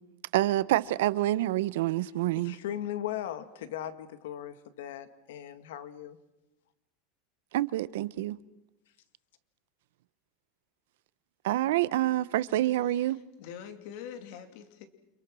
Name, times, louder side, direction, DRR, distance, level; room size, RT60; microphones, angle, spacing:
voice 1, 0.3-2.6 7.5-8.4 11.4-13.2, right 15 dB, 75° right, 0.9 m, -27 dB
voice 2, 2.4-6.2, left 11 dB, 85° left, 1.8 m, -38 dB
voice 3, 12.9-14.9, left 8 dB, 55° left, 2.8 m, -45 dB
29.5 x 27.0 x 6.3 m
supercardioid pair, 175°, 0 cm